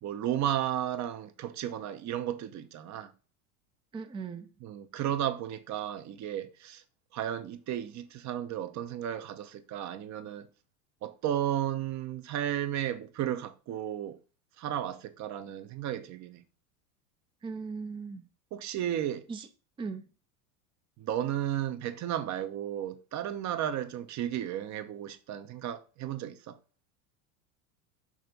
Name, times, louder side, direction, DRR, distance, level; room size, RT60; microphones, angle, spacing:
voice 1, 0.0-3.1 4.6-6.8 7.1-10.5 11.0-14.2 14.6-16.4 18.5-19.2 21.0-26.6, right 11 dB, 40° right, 0.9 m, -34 dB
voice 2, 3.9-4.5 17.4-18.3 19.3-19.5 19.8-20.0, right 5 dB, 10° right, 0.5 m, -38 dB
6.5 x 3.3 x 5.2 m
hypercardioid pair, 100°, 44 cm